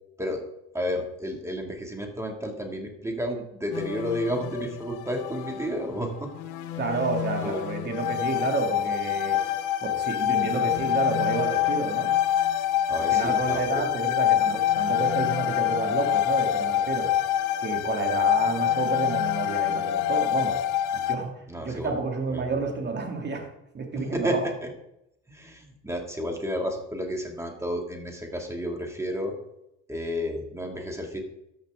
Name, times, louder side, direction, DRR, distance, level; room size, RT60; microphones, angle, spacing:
voice 1, 0.7-6.3 7.4-7.7 12.9-13.8 21.5-21.9 22.3-22.6 23.9-24.7 25.3-29.3 29.9-31.2, equal, 10° right, 2 dB, 2.4 m, -31 dB
sound 1, 3.7-5.8 6.3-21.2, left 11 dB, 80° left, 0.9 m, -26 dB
voice 2, 6.8-9.4 9.8-12.1 12.9-17.1 17.6-20.6 20.9-23.5 23.7-24.4, right 4 dB, 35° right, 2 dB, 2.4 m, -30 dB
13.5 x 5.7 x 3.7 m, 0.82 s
supercardioid pair, 80°, 30 cm